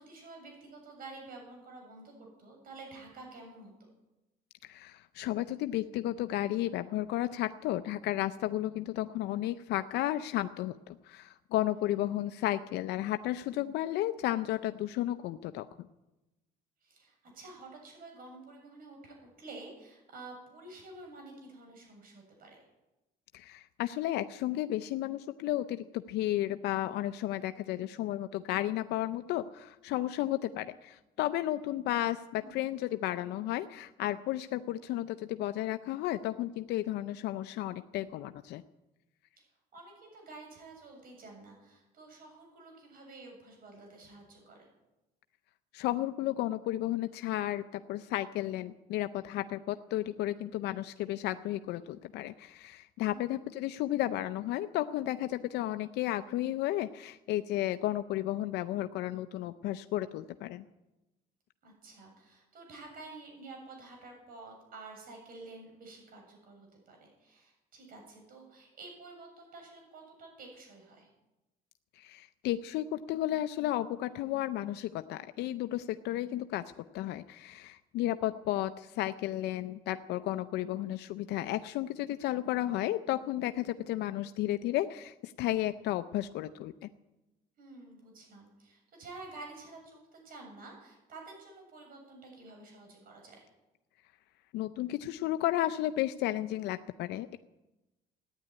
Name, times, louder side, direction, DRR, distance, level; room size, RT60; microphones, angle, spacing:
voice 1, 0.0-3.7 11.7-11.9 16.8-22.7 32.4-32.6 39.4-39.5 39.7-44.7 53.0-53.3 61.6-71.1 87.6-93.5, right 3 dB, 60° right, 2 dB, 7.6 m, -50 dB
voice 2, 4.6-15.7 23.3-38.6 45.7-60.6 72.0-86.9 94.5-97.4, left 14 dB, 80° left, 10 dB, 0.6 m, -33 dB
15.0 x 10.0 x 9.6 m, 1.0 s
cardioid pair, 110°, 17 cm